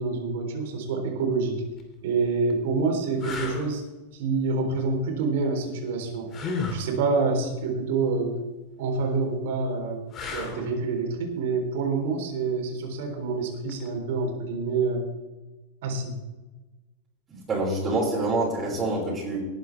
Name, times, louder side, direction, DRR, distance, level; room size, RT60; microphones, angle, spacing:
voice 1, 0.0-1.6 2.0-3.9 4.1-6.3 6.7-8.3 8.8-10.0 10.3-15.0 15.8-16.2, right 4 dB, 55° right, 3 dB, 3.8 m, -27 dB
sound 1, 1.6-1.8 2.5-2.6 3.2-3.7 6.3-6.9 10.1-10.7 13.7-13.9, left 4 dB, 30° left, 2.7 m, -32 dB
voice 2, 17.3-19.4, right 2 dB, 20° right, -7 dB, 5.5 m, -26 dB
19.5 x 10.0 x 3.5 m, 1.1 s
figure-of-eight pair, 90°, 0 cm